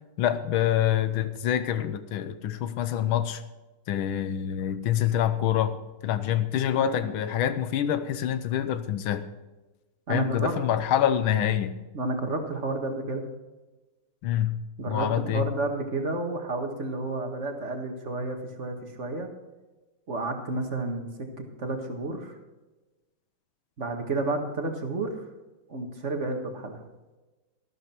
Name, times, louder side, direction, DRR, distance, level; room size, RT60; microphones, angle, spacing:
voice 1, 0.2-3.4 3.9-5.8 6.0-9.3 10.1-11.8 14.2-14.6 14.9-15.5, left 10 dB, 90° left, 11 dB, 1.6 m, -26 dB
voice 2, 6.7-7.1 10.1-10.5 11.9-13.3 14.8-19.3 20.1-21.3 21.6-22.3 23.8-25.2 25.7-26.8, right 2 dB, 40° right, 4 dB, 1.9 m, -31 dB
13.0 x 12.5 x 4.4 m, 1.1 s
omnidirectional pair, 2.2 m